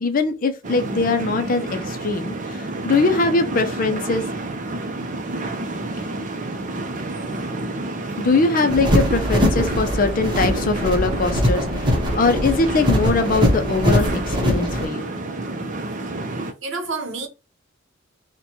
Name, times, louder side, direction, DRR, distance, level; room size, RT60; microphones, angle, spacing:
voice 1, 0.0-4.3 8.2-15.1, left 3 dB, 45° left, 0.5 m, -22 dB
sound 1, 0.6-16.5, right 2 dB, 40° right, 0.5 m, -30 dB
sound 2, 8.7-14.9, equal, 25° right, 0.9 m, -21 dB
voice 2, 16.4-17.3, right 3 dB, 70° right, 0.8 m, -29 dB
4.3 x 2.2 x 2.8 m
head